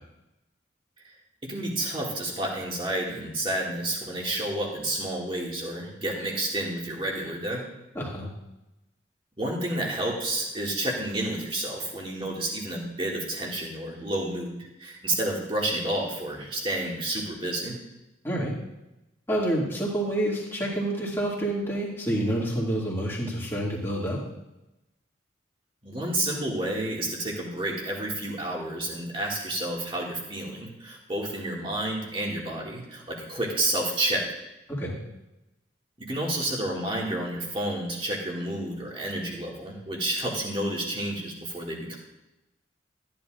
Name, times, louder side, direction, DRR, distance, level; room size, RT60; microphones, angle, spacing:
voice 1, 1.4-7.6 9.4-17.8 25.8-34.2 36.0-42.0, right 1 dB, 25° right, -3 dB, 2.2 m, -30 dB
voice 2, 7.9-8.3 18.2-18.5 19.3-24.2 34.7-34.9, right 1 dB, 10° left, -5 dB, 2.3 m, -28 dB
14.0 x 10.5 x 2.5 m, 0.96 s
head